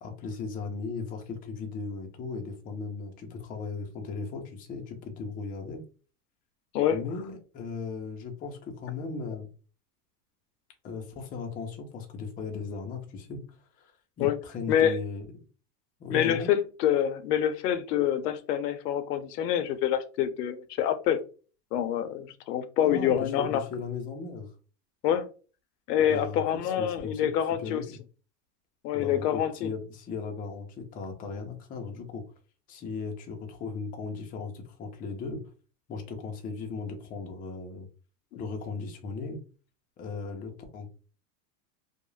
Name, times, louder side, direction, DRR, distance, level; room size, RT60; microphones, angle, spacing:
voice 1, 0.0-5.8 6.9-9.5 10.8-13.9 14.2-15.3 16.0-16.5 22.8-24.5 26.1-27.3 27.6-28.0 28.9-32.2 32.7-35.4 35.9-37.9 38.3-39.4 40.0-40.9, left 4 dB, 20° left, 0.4 m, -37 dB
voice 2, 16.1-21.2 21.7-23.6 25.0-25.3 25.9-27.8 28.8-29.7 38.3-38.4, left 10 dB, 85° left, 0.6 m, -26 dB
2.3 x 2.0 x 3.1 m
supercardioid pair, 130°, 46 cm